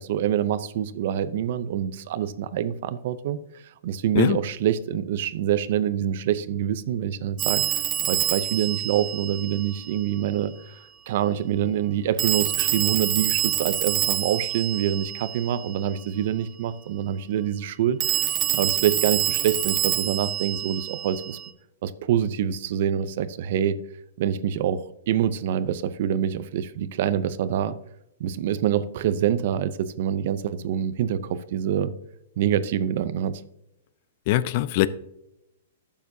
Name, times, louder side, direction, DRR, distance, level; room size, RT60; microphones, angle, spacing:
voice 1, 0.0-3.4 3.8-7.6 8.0-10.8 11.1-21.4 21.8-23.8 24.2-27.8 28.2-31.9 32.4-33.4, right 10 dB, 50° right, 15 dB, 0.5 m, -26 dB
Telephone, 7.4-10.0 12.2-15.8 18.0-21.5, right 12 dB, 20° right, 0.8 m, -27 dB
voice 2, 34.3-34.9, left 14 dB, 40° left, 17 dB, 0.4 m, -21 dB
12.0 x 7.0 x 2.7 m, 0.83 s
hypercardioid pair, 155°, 0 cm